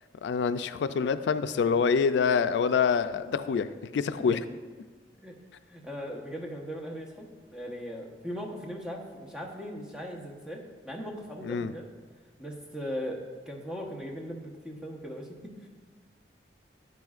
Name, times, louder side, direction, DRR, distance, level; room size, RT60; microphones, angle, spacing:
voice 1, 0.2-4.4 11.4-11.7, left 6 dB, 85° left, 12 dB, 0.3 m, -26 dB
voice 2, 5.7-11.9 12.4-15.7, equal, 5° right, -1 dB, 1.0 m, -39 dB
9.7 x 9.1 x 2.4 m, 1.5 s
head